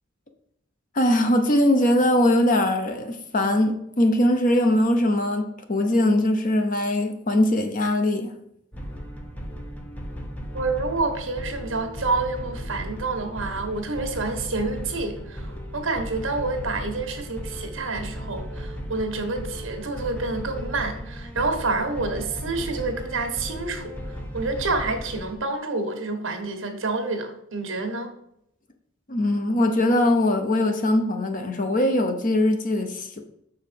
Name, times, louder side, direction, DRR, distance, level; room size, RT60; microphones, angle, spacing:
voice 1, 0.9-8.3 29.1-33.2, left 1 dB, 40° left, 0.8 m, -21 dB
sound 1, 8.7-25.3, equal, 10° left, 0.8 m, -36 dB
voice 2, 10.5-24.0 24.3-28.1, right 3 dB, 65° right, 1.3 m, -28 dB
6.4 x 4.7 x 5.1 m
head